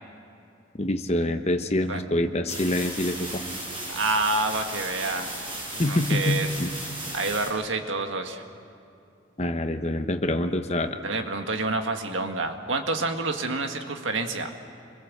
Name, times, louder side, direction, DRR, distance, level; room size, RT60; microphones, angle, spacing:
voice 1, 0.7-3.4 5.8-6.7 9.4-11.0, left 1 dB, 30° left, 7 dB, 1.0 m, -26 dB
sound 1, 2.5-7.5, right 1 dB, 25° right, 6.7 m, -35 dB
voice 2, 3.9-5.3 5.7-6.5 7.1-8.4 11.0-14.5, right 3 dB, 75° right, 5 dB, 1.7 m, -28 dB
26.5 x 22.0 x 7.4 m, 2.6 s
head